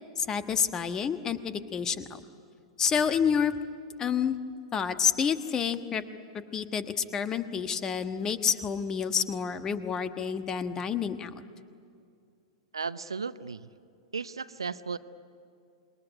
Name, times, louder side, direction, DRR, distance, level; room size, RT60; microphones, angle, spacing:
voice 1, 0.2-2.2 2.8-3.5 4.0-4.3 4.7-6.0 6.5-11.3, left 7 dB, 20° left, 11 dB, 1.4 m, -28 dB
voice 2, 12.7-13.7 14.1-15.0, right 5 dB, 75° right, 15 dB, 0.8 m, -35 dB
27.0 x 22.0 x 9.9 m, 2.5 s
figure-of-eight pair, 100°, 3 cm